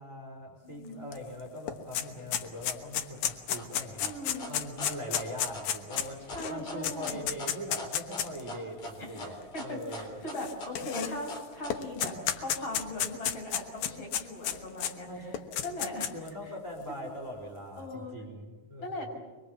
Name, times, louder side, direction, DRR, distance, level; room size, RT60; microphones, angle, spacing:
voice 1, 0.0-4.1 4.5-10.2 15.1-15.6 16.1-19.2, equal, 20° right, 0 dB, 5.1 m, -41 dB
voice 2, 0.6-1.0 4.0-4.4 6.3-7.2 9.0-16.1 16.4-16.5 17.8-18.1 18.8-19.2, left 1 dB, 35° left, 1 dB, 6.8 m, -39 dB
sound 1, 1.1-1.2 1.5-8.4 9.2-9.3 10.3-11.4 11.7-14.9 15.3-16.3, left 10 dB, 85° left, 3.0 m, -32 dB
sound 2, 3.6-12.1, left 1 dB, 50° left, 5.0 m, -42 dB
24.5 x 24.0 x 7.4 m, 1.2 s
omnidirectional pair, 3.9 m